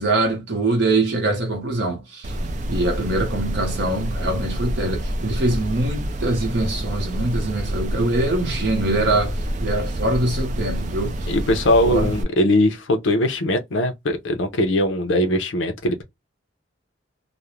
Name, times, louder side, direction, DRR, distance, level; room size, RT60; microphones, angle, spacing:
voice 1, 0.0-2.4 2.7-11.3 11.9-12.1, right 2 dB, 60° right, 0.8 m, -23 dB
sound 1, 2.2-12.2, right 1 dB, 40° right, 0.4 m, -27 dB
voice 2, 11.3-16.0, left 1 dB, 75° left, 0.6 m, -20 dB
2.4 x 2.0 x 3.0 m
head